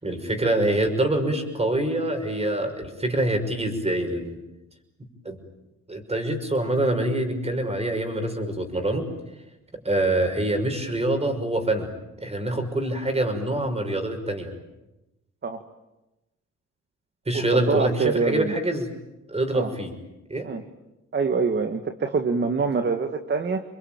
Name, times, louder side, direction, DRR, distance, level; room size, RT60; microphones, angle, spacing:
voice 1, 0.0-4.4 5.2-5.4 5.9-9.0 9.7-11.9 12.2-14.5 17.3-18.9 19.3-19.9 20.3-20.5, right 1 dB, 20° right, 6 dB, 6.0 m, -25 dB
voice 2, 17.3-18.5 19.5-19.7 20.4-20.6 21.1-23.6, right 4 dB, 35° right, 7 dB, 1.9 m, -25 dB
29.0 x 22.5 x 9.1 m, 0.97 s
cardioid pair, 90°, 30 cm